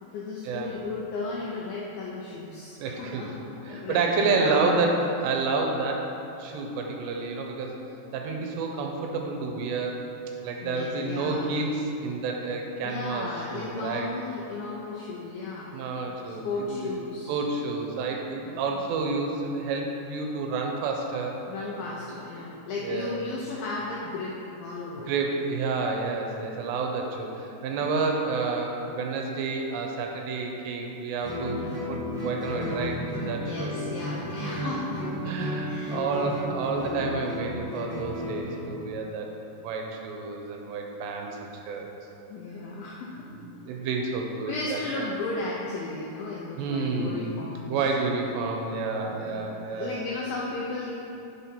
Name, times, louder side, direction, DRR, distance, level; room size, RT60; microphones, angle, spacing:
voice 1, 0.0-4.9 10.6-11.5 12.8-15.7 16.3-17.4 18.5-18.7 21.5-25.1 27.8-27.9 31.5-31.9 33.4-35.1 35.6-36.1 42.3-43.3 44.5-47.8 49.1-49.5 49.8-50.9, left 3 dB, 85° left, -4 dB, 2.1 m, -35 dB
voice 2, 2.8-3.3 3.7-7.8 8.1-10.1 10.4-14.1 15.7-16.9 17.3-21.5 22.8-23.2 25.1-33.7 35.3-39.3 39.6-41.9 43.2-45.1 46.6-47.3 47.7-50.0, right 3 dB, 90° right, 1 dB, 2.9 m, -30 dB
Guitar, 31.2-38.7, equal, 65° right, 0.7 m, -33 dB
6.5 x 5.9 x 5.5 m, 3.0 s
omnidirectional pair, 5.0 m